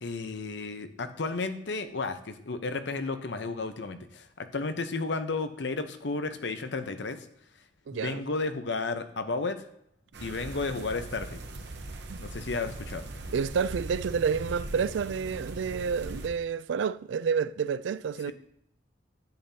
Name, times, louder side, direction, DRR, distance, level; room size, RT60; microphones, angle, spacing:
voice 1, 0.0-7.2 7.9-9.6 10.2-11.4 12.2-13.0 18.3-18.4, left 3 dB, 70° left, 0.8 m, -33 dB
voice 2, 7.9-8.2 12.1-12.2 13.3-18.3, right 6 dB, 85° right, 0.4 m, -29 dB
sound 1, 10.1-16.3, right 2 dB, 65° right, 0.9 m, -40 dB
10.5 x 8.0 x 2.8 m
head